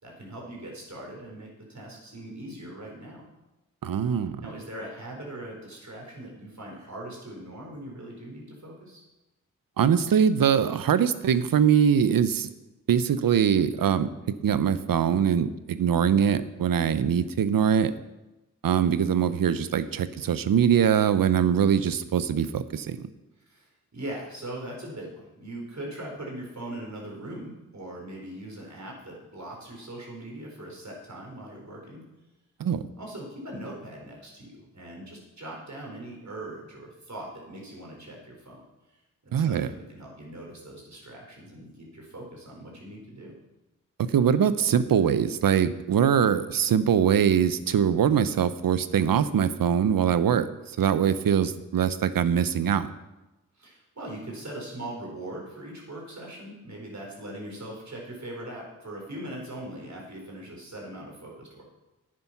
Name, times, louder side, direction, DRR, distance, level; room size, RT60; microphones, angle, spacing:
voice 1, 0.0-3.2 4.4-9.0 23.5-32.1 33.0-38.6 39.2-43.3 53.5-61.6, right 1 dB, 50° right, -1 dB, 4.5 m, -40 dB
voice 2, 3.8-4.4 9.8-12.5 12.9-14.1 14.4-17.9 18.6-23.1 32.6-32.9 39.3-39.7 44.0-52.9, right 8 dB, 75° right, 14 dB, 0.7 m, -23 dB
9.9 x 9.4 x 6.0 m, 1.0 s
cardioid pair, 40°, 35 cm